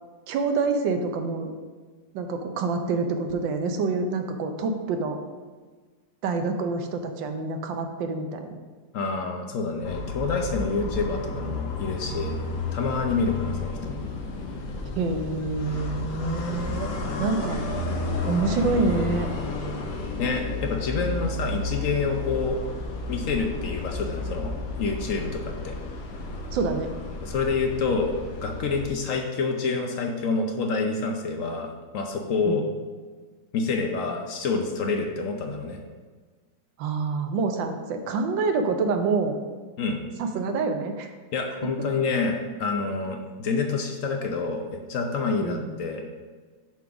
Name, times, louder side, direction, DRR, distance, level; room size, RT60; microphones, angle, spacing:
voice 1, 0.3-1.5 2.1-5.2 6.2-8.6 15.0-16.9 17.2-17.6 18.2-19.3 26.5-26.9 32.5-32.6 36.8-39.4 40.2-41.1 41.8-41.9 45.4-45.7, right 4 dB, 75° right, 6 dB, 1.4 m, -27 dB
voice 2, 8.9-12.4 12.7-14.0 17.1-17.3 20.2-22.6 23.1-24.5 24.8-25.8 27.2-28.1 28.4-31.7 31.9-32.6 33.5-35.8 39.8-40.0 41.3-46.0, left 4 dB, 60° left, 3 dB, 0.8 m, -27 dB
sound 1, 9.8-28.9, left 3 dB, 80° left, 1.7 m, -32 dB
7.4 x 3.9 x 5.8 m, 1.4 s
omnidirectional pair, 2.1 m